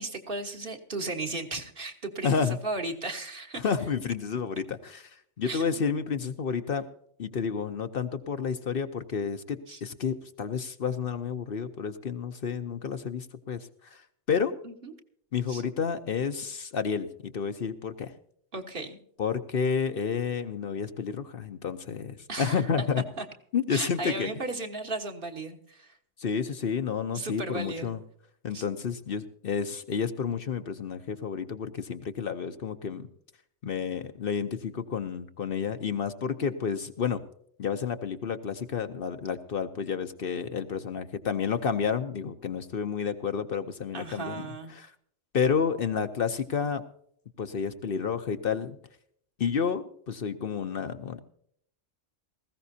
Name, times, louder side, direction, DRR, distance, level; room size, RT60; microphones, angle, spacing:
voice 1, 0.0-3.6 5.4-5.8 9.7-9.8 14.6-14.9 15.5-15.6 18.5-19.0 22.3-22.8 23.2-23.3 23.7-26.0 27.1-27.9 28.5-28.6 43.9-44.7, right 2 dB, 50° right, 3 dB, 1.6 m, -35 dB
voice 2, 2.2-2.6 3.6-5.1 5.4-6.8 7.2-14.0 14.3-14.5 15.3-18.1 19.2-23.0 23.5-24.3 26.2-28.0 28.4-33.1 33.6-37.2 37.6-44.5 44.7-44.9 45.3-46.8 47.4-48.8 49.4-51.2, left 6 dB, 55° left, 8 dB, 0.9 m, -30 dB
19.0 x 15.5 x 2.7 m, 0.66 s
omnidirectional pair, 1.2 m